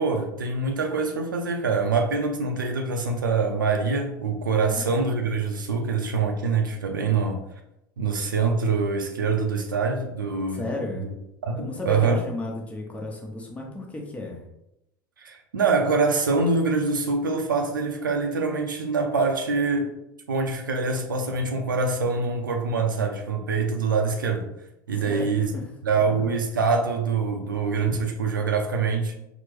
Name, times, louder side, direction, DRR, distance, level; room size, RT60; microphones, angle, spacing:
voice 1, 0.0-7.4 8.0-10.7 11.4-12.2 15.2-19.9 20.3-24.5 24.9-25.5 25.9-29.1, right 4 dB, 80° right, 0.4 m, -24 dB
voice 2, 4.5-4.8 10.5-11.1 11.6-14.4 25.0-25.6 25.9-26.3, left 2 dB, 10° left, 0.9 m, -34 dB
4.3 x 2.0 x 3.1 m
figure-of-eight pair, 75°, 11 cm